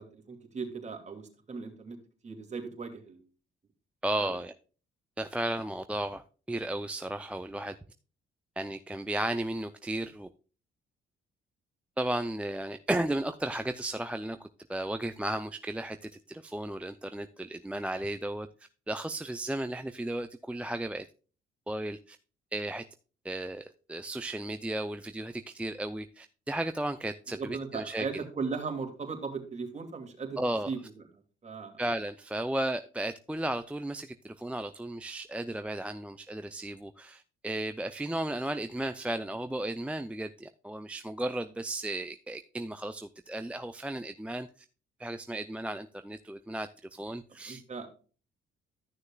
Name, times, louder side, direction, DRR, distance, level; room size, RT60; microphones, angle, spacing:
voice 1, 0.0-2.0 2.2-3.3 4.2-4.4 27.3-31.0 31.4-31.8 47.5-47.9, right 5 dB, 35° right, 2.4 m, -38 dB
voice 2, 4.0-4.5 5.2-7.7 8.6-10.3 12.0-14.4 14.7-16.0 16.3-18.5 18.9-21.1 21.7-22.2 22.5-22.8 23.2-28.1 30.4-30.7 31.8-44.5 45.0-47.6, right 1 dB, 5° right, 0.5 m, -34 dB
13.5 x 6.4 x 2.3 m
cardioid pair, 90°, 20 cm